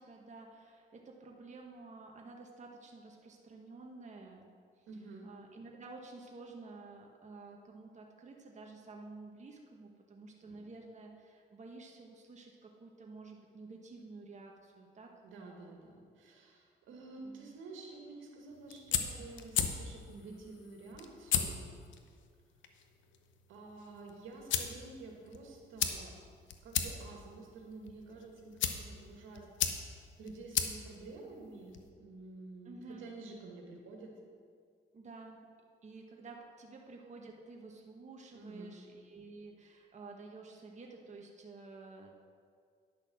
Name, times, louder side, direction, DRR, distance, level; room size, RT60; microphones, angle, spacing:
voice 1, 0.0-4.9 5.2-15.1 17.2-17.5 32.6-33.1 34.9-35.5 35.8-42.2, right 3 dB, 35° right, 1 dB, 1.3 m, -51 dB
voice 2, 4.9-5.3 10.4-10.6 15.2-21.6 23.5-26.2 26.6-34.1 38.3-38.8, right 3 dB, 80° right, 1 dB, 1.9 m, -50 dB
sound 1, 18.5-31.9, left 8 dB, 70° left, 0.9 m, -38 dB
10.5 x 6.5 x 6.2 m, 2.1 s
cardioid pair, 90°, 20 cm